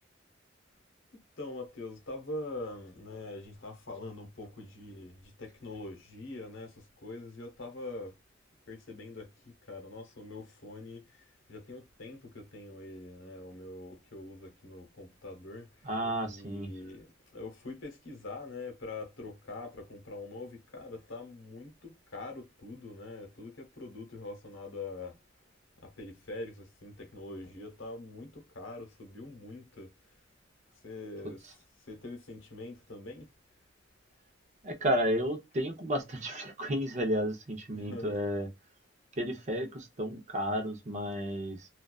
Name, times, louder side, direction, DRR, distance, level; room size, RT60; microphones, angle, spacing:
voice 1, 1.4-8.1 8.7-9.3 9.7-15.9 16.2-17.1 17.3-25.2 25.8-29.9 30.8-31.5 31.9-33.3 37.7-38.2, left 2 dB, 85° left, 0.9 m, -44 dB
voice 2, 15.8-16.7 34.6-38.5 39.2-41.7, equal, 35° right, 0.6 m, -32 dB
2.3 x 2.3 x 2.3 m
head